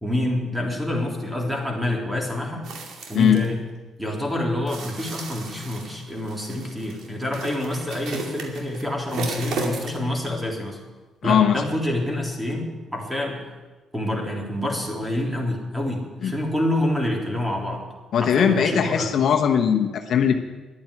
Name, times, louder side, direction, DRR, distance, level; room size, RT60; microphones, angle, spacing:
voice 1, 0.0-2.7 3.1-3.6 4.0-10.8 11.2-13.4 13.9-17.8 18.2-19.1, left 1 dB, 10° right, 0 dB, 3.5 m, -27 dB
sound 1, 2.6-3.5 4.7-10.1 10.4-10.5, right 3 dB, 75° right, 2.5 m, -34 dB
voice 2, 11.2-11.5 16.2-16.3 18.1-20.3, left 8 dB, 65° left, 4 dB, 1.1 m, -19 dB
11.0 x 8.8 x 9.9 m, 1.2 s
cardioid pair, 90°, 0 cm